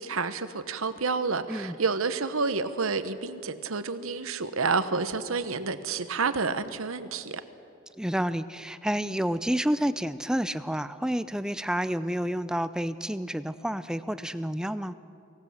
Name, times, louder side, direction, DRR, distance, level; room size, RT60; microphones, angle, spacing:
voice 1, 0.0-7.4, right 4 dB, 80° right, 11 dB, 1.1 m, -29 dB
voice 2, 8.0-14.9, equal, 5° right, 13 dB, 0.4 m, -29 dB
24.5 x 18.0 x 7.2 m, 2.6 s
head